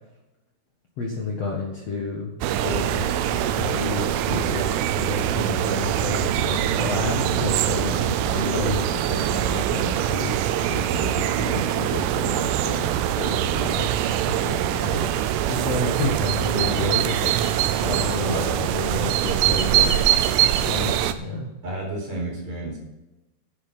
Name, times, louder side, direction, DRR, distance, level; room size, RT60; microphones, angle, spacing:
voice 1, 1.0-2.3 2.6-12.9 13.2-13.9 14.2-15.1 15.4-17.3 17.8-20.0 20.6-21.5, left 3 dB, 75° left, -1 dB, 1.4 m, -30 dB
sound 1, 2.4-21.1, right 11 dB, 85° right, 3.3 m, -23 dB
voice 2, 4.2-4.6 7.3-7.5 18.2-18.7 21.6-22.8, right 1 dB, 40° right, -1 dB, 5.3 m, -31 dB
11.0 x 11.0 x 5.4 m, 1.0 s
omnidirectional pair, 5.6 m